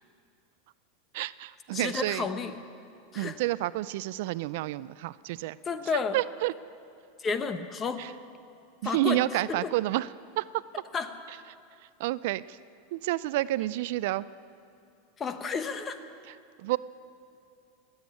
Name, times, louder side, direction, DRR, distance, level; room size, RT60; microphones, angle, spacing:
voice 1, 1.1-2.2 3.2-5.6 6.1-6.5 8.8-10.1 10.4-10.5 12.0-12.4 12.9-14.3 16.6-16.8, right 16 dB, 65° right, 18 dB, 0.3 m, -29 dB
voice 2, 1.7-2.6 3.1-3.4 5.6-6.2 7.2-8.1 8.8-9.7 10.9-11.1 15.2-16.0, left 5 dB, 25° left, 9 dB, 1.0 m, -32 dB
18.5 x 8.0 x 9.6 m, 2.5 s
hypercardioid pair, 115°, 0 cm